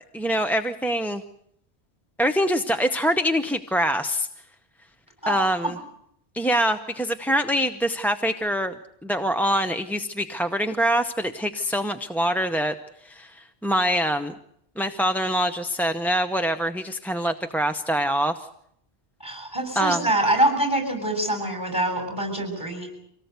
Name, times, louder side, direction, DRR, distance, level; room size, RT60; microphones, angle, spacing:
voice 1, 0.1-1.2 2.2-4.3 5.3-5.8 6.3-8.8 9.0-12.7 13.0-14.3 14.8-18.3 19.8-20.0, equal, ahead, 6 dB, 0.7 m, -24 dB
voice 2, 5.2-5.7 19.2-22.9, right 1 dB, 20° left, 5 dB, 7.4 m, -25 dB
25.0 x 18.5 x 8.2 m, 0.72 s
omnidirectional pair, 1.1 m